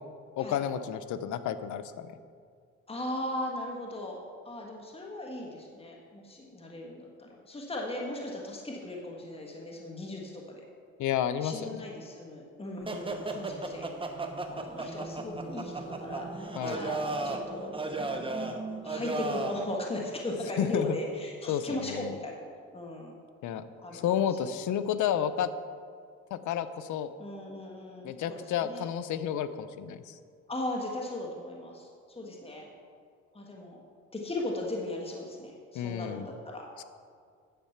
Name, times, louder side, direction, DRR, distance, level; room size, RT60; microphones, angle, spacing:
voice 1, 0.4-2.1 11.0-11.8 16.5-16.8 20.6-20.9 21.5-22.2 23.4-23.6 23.9-25.5 26.3-27.1 28.0-30.1 35.7-36.3 36.8-36.9, left 9 dB, 75° left, 12 dB, 0.6 m, -31 dB
voice 2, 2.9-10.6 11.4-14.0 14.6-17.8 18.1-22.4 22.7-23.1 23.8-24.0 24.4-24.5 27.2-28.9 30.5-32.7 33.3-33.8 34.1-36.7, left 1 dB, 20° left, -1 dB, 1.5 m, -38 dB
sound 1, 12.8-19.7, right 2 dB, 15° right, 1.0 m, -35 dB
10.5 x 7.3 x 5.8 m, 2.1 s
cardioid pair, 90°, 30 cm